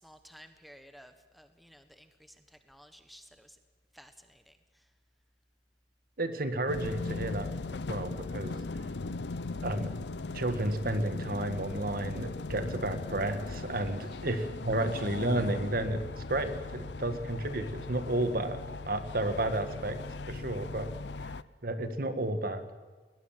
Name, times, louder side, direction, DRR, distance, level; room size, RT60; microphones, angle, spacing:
voice 1, 0.0-3.6 3.9-4.9 14.0-14.3, equal, ahead, 8 dB, 1.4 m, -55 dB
voice 2, 6.2-8.5 9.6-9.9 10.3-20.9 21.2-21.3 21.6-22.6, right 1 dB, 55° right, 10 dB, 1.7 m, -32 dB
sound 1, 6.7-21.4, left 3 dB, 75° left, 0.7 m, -39 dB
21.0 x 21.0 x 7.5 m, 1.4 s
head